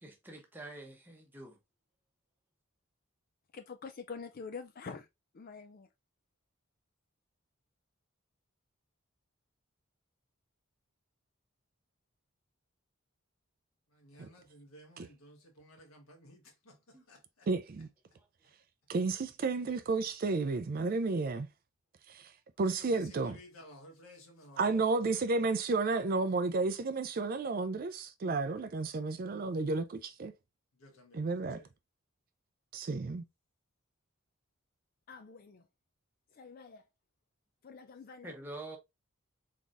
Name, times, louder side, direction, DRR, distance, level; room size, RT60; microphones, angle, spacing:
voice 1, 0.0-1.6 16.9-17.0 18.1-18.3 38.2-38.8, right 2 dB, 10° right, 0.9 m, -46 dB
voice 2, 3.5-5.1 5.3-5.9 35.1-35.7 36.3-36.8 37.6-38.3, left 5 dB, 45° left, 0.4 m, -46 dB
voice 3, 13.9-17.5 23.2-24.9 30.8-31.2 31.5-31.7, equal, 90° left, 1.4 m, -56 dB
voice 4, 17.5-17.9 18.9-21.5 22.1-22.3 22.6-23.4 24.6-30.3 31.1-31.6 32.7-33.2, right 3 dB, 45° right, 0.4 m, -32 dB
3.9 x 3.7 x 2.5 m
head